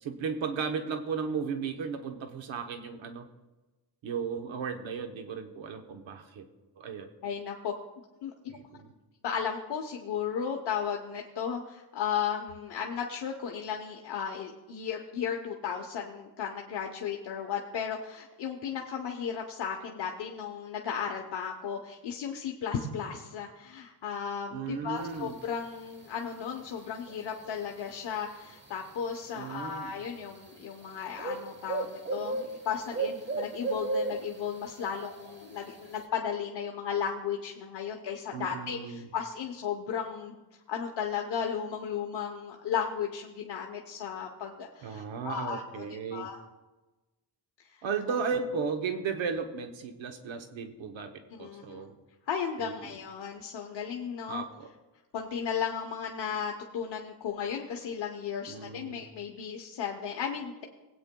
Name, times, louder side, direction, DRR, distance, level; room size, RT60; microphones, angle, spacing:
voice 1, 0.0-3.3 4.0-6.5 6.8-7.1 8.5-8.9 24.5-25.3 29.4-29.9 38.3-39.0 44.8-46.3 47.8-52.0 52.6-52.9 54.3-54.7 58.5-59.0, right 5 dB, 90° right, 6 dB, 1.0 m, -35 dB
voice 2, 7.2-7.7 8.2-8.6 9.2-40.4 40.7-46.4 47.6-48.2 51.3-51.8 52.3-54.4 55.1-60.6, left 7 dB, 65° left, 1 dB, 0.9 m, -35 dB
sound 1, 25.0-36.0, right 3 dB, 25° right, 0.9 m, -38 dB
20.5 x 8.7 x 2.2 m, 1.1 s
wide cardioid pair, 165°, 45 cm